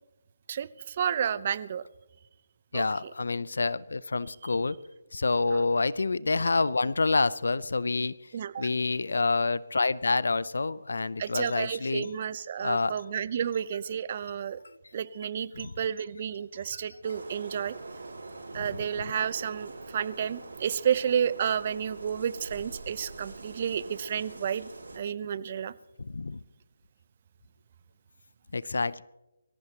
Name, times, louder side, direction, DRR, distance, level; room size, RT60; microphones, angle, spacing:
voice 1, 0.5-1.8 2.7-2.9 4.4-4.5 5.5-5.7 8.3-8.7 11.2-14.6 14.9-17.8 18.5-24.7 24.9-25.8, right 8 dB, 40° right, 17 dB, 0.7 m, -31 dB
voice 2, 2.7-4.8 5.1-8.1 8.6-12.1 12.6-12.9 15.6-15.7 16.7-16.8 26.0-26.4 28.5-29.0, left 3 dB, 75° left, 20 dB, 0.6 m, -27 dB
sound 1, 17.0-25.0, right 3 dB, 80° right, 5.7 m, -44 dB
24.0 x 15.0 x 2.9 m, 1.0 s
figure-of-eight pair, 155°, 0 cm